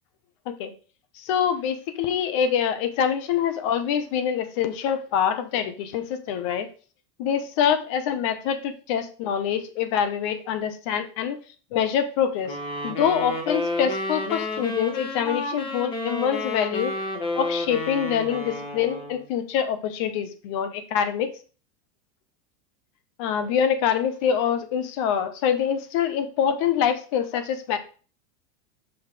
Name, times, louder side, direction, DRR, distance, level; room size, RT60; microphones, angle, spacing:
voice 1, 1.2-6.7 7.2-11.4 11.7-12.5 12.8-16.9 17.3-21.3 23.2-27.8, left 8 dB, 55° left, 10 dB, 1.0 m, -25 dB
sound 1, 12.5-19.3, left 2 dB, 30° left, 1.2 m, -30 dB
5.7 x 5.6 x 3.5 m, 0.38 s
supercardioid pair, 160°, 19 cm